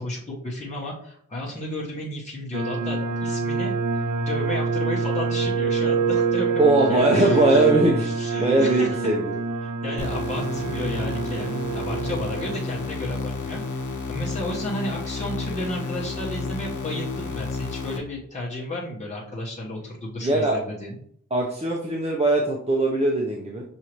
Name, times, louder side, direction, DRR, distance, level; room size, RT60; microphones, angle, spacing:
voice 1, 0.0-9.1 9.6-13.8 14.1-21.0, left 1 dB, 25° left, -5 dB, 1.1 m, -33 dB
sound 1, 2.5-12.6, right 5 dB, 70° right, 0.6 m, -26 dB
voice 2, 6.6-8.0 8.4-9.2 20.2-20.6 21.3-23.6, right 2 dB, 20° right, -2 dB, 0.7 m, -20 dB
sound 2, 10.0-18.0, left 3 dB, 75° left, 0.8 m, -31 dB
6.3 x 2.7 x 3.0 m, 0.65 s
wide cardioid pair, 70°, 31 cm